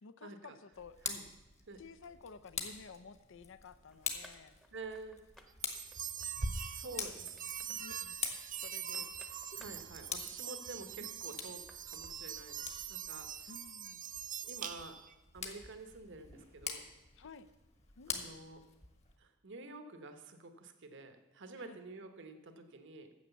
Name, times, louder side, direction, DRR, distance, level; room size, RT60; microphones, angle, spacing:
voice 1, 0.0-1.0 1.8-4.6 6.8-9.1 13.5-14.0 17.1-17.5 17.9-18.3 21.6-21.8, left 5 dB, 65° left, 14 dB, 0.6 m, -54 dB
Tick, 0.7-19.2, left 6 dB, 35° left, 1.3 m, -46 dB
sound 1, 3.8-12.2, equal, ahead, 0.9 m, -64 dB
voice 2, 4.7-5.3 6.6-7.8 8.9-9.0 9.5-13.5 14.4-15.0 15.3-16.9 18.1-18.6 19.2-23.1, right 3 dB, 60° right, 8 dB, 1.0 m, -49 dB
sound 2, 5.6-15.1, right 6 dB, 40° right, 0.6 m, -43 dB
9.4 x 7.5 x 7.0 m, 1.0 s
head